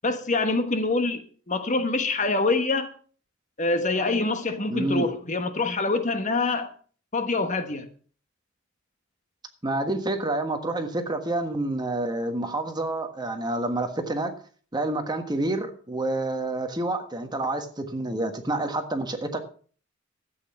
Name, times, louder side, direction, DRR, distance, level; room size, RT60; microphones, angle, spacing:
voice 1, 0.0-2.9 3.6-6.7 7.1-7.9, left 3 dB, 40° left, 1.3 m, -25 dB
voice 2, 4.7-5.1 9.6-14.3 14.7-19.4, right 2 dB, 20° right, 1.4 m, -28 dB
12.5 x 8.6 x 5.8 m
head